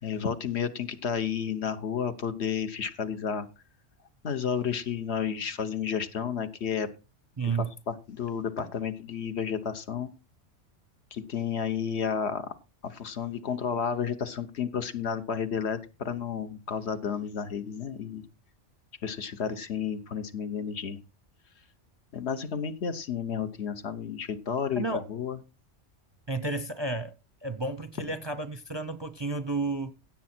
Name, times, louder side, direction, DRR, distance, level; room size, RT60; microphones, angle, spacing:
voice 1, 0.0-3.5 4.2-6.9 7.9-10.1 11.1-12.5 12.8-18.2 19.0-21.0 22.1-24.8 25.1-25.4, left 7 dB, 65° left, 1.3 m, -31 dB
voice 2, 7.4-7.7 8.6-8.7 24.8-25.0 26.3-27.1 27.4-29.9, right 3 dB, 30° right, 0.6 m, -31 dB
16.5 x 7.5 x 4.4 m
omnidirectional pair, 1.2 m